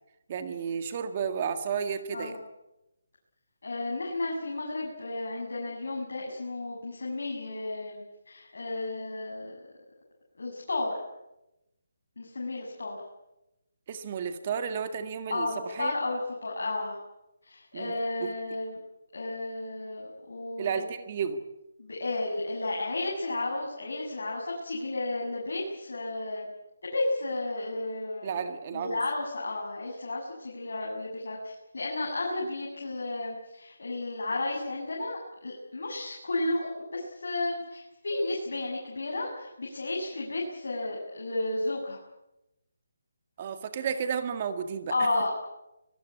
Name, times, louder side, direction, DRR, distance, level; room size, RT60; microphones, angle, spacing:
voice 1, 0.3-2.4 13.9-15.9 17.7-17.9 18.2-18.3 20.6-21.4 28.2-29.0 43.4-44.9, right 7 dB, 30° right, 9 dB, 1.9 m, -32 dB
voice 2, 2.1-2.4 3.6-9.6 10.4-11.0 12.2-13.0 15.3-17.0 17.4-18.8 19.1-20.8 21.8-26.5 26.8-28.4 28.7-42.0 44.9-45.3, left 2 dB, 75° left, -2 dB, 7.7 m, -33 dB
25.5 x 19.5 x 8.6 m, 0.93 s
hypercardioid pair, 165°, 0 cm